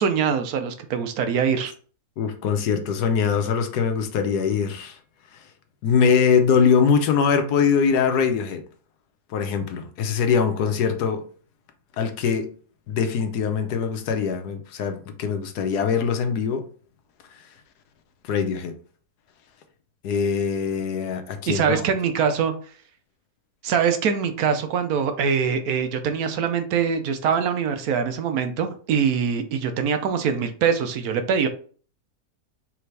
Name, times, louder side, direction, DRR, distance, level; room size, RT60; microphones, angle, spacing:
voice 1, 0.0-1.7 21.5-22.5 23.6-31.5, right 7 dB, 70° right, 1.1 m, -23 dB
voice 2, 2.2-5.0 5.8-8.6 9.3-11.2 12.0-12.5 12.9-16.6 18.3-18.7 20.0-21.8, left 6 dB, 80° left, 1.3 m, -22 dB
4.7 x 3.4 x 3.3 m
omnidirectional pair, 1.7 m